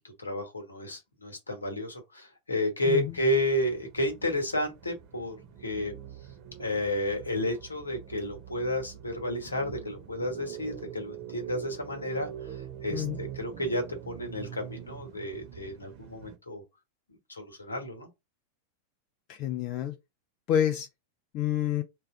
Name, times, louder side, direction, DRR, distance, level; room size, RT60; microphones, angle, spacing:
voice 1, 0.2-5.4 5.6-5.9 6.6-16.6 17.1-18.1, left 1 dB, 75° left, 1.1 m, -31 dB
voice 2, 2.9-3.2 12.9-13.2 19.3-20.0 20.5-20.9 21.3-21.8, left 10 dB, 40° left, 0.4 m, -28 dB
sound 1, 2.9-16.4, right 10 dB, 45° right, 0.9 m, -44 dB
3.3 x 2.4 x 4.4 m
figure-of-eight pair, 90°, 0 cm